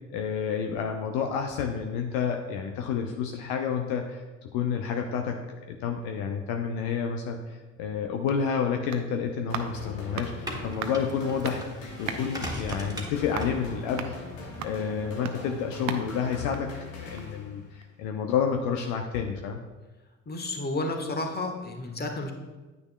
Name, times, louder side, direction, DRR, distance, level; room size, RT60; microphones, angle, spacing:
voice 1, 0.1-4.2 4.5-5.4 5.7-11.6 12.0-14.2 14.6-16.7 17.0-19.6, left 7 dB, 60° left, 4 dB, 0.7 m, -29 dB
sound 1, 7.9-17.5 17.8-17.9, right 7 dB, 45° right, 0.8 m, -41 dB
sound 2, 9.5-17.8, left 4 dB, 80° left, 1.2 m, -42 dB
sound 3, 10.1-16.3, equal, 10° right, 1.7 m, -41 dB
voice 2, 20.3-22.3, left 2 dB, 25° left, 4 dB, 1.3 m, -31 dB
9.3 x 9.2 x 2.2 m, 1.2 s
figure-of-eight pair, 45°, 39 cm